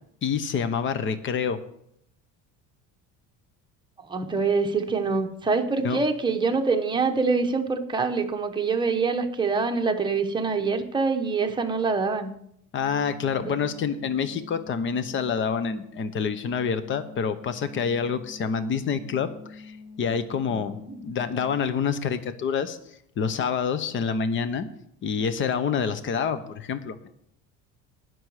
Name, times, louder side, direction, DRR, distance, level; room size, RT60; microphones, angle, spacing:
voice 1, 0.2-1.6 5.8-6.0 12.7-22.8 23.2-24.7 25.0-27.1, left 6 dB, 35° left, 12 dB, 0.9 m, -27 dB
voice 2, 4.1-12.3 13.4-13.6 20.5-20.6, right 4 dB, 15° right, 4 dB, 1.0 m, -25 dB
sound 1, 12.7-21.6, left 4 dB, 70° left, 3.5 m, -46 dB
18.5 x 6.2 x 4.9 m, 0.73 s
cardioid pair, 145°, 33 cm